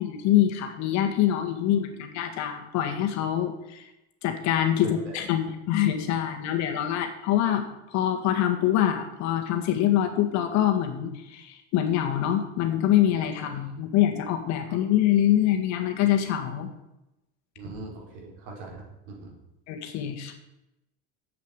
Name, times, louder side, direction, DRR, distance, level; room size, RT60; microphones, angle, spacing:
voice 1, 0.0-3.9 4.2-7.7 7.9-16.7 19.7-20.3, left 11 dB, 55° left, 5 dB, 1.7 m, -25 dB
voice 2, 4.8-5.2 13.4-13.7 14.7-14.8 17.6-19.3, right 2 dB, 75° right, 0 dB, 4.2 m, -41 dB
8.2 x 7.8 x 8.1 m, 0.90 s
supercardioid pair, 120°, 33 cm